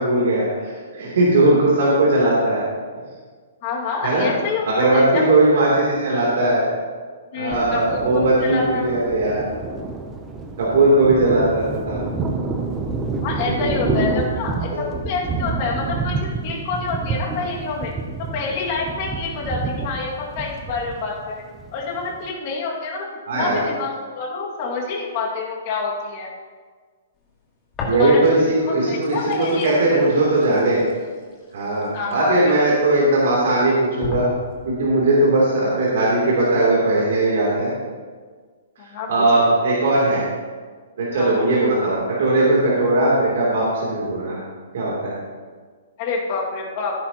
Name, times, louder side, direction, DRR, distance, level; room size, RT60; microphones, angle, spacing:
voice 1, 0.0-2.7 4.0-4.3 4.6-6.7 7.3-9.4 10.6-12.0 14.7-14.8 23.3-23.6 27.8-30.8 31.5-34.2 34.6-37.7 39.1-40.2 41.0-44.4 44.7-45.1, right 2 dB, 55° right, -6 dB, 3.1 m, -18 dB
voice 2, 3.6-5.3 7.3-8.8 13.2-17.9 18.3-21.4 21.7-23.1 23.3-26.3 27.9-28.2 28.9-30.0 31.9-32.4 32.7-32.8 38.9-39.5 41.2-41.5 46.0-46.9, left 4 dB, 30° left, -3 dB, 2.1 m, -27 dB
Thunder, 7.5-22.3, right 3 dB, 10° right, 0.7 m, -28 dB
sound 1, 27.7-28.5 28.8-32.8 33.4-33.5 34.0-34.9, left 2 dB, 15° left, 1.8 m, -34 dB
16.0 x 9.4 x 3.0 m, 1.6 s
hypercardioid pair, 175°, 0 cm